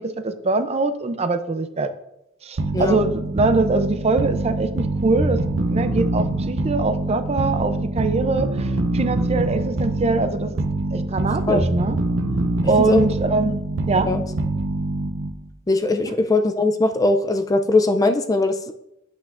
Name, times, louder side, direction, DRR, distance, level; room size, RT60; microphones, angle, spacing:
voice 1, 0.0-1.9 2.4-10.6 10.9-12.0 12.7-13.6 13.9-14.1 16.1-16.2, right 3 dB, 35° right, 10 dB, 0.5 m, -23 dB
sound 1, 2.6-15.5, right 2 dB, 70° right, 0.6 m, -24 dB
voice 2, 15.7-18.7, left 2 dB, 20° left, 7 dB, 0.4 m, -20 dB
8.5 x 7.9 x 2.5 m, 0.82 s
head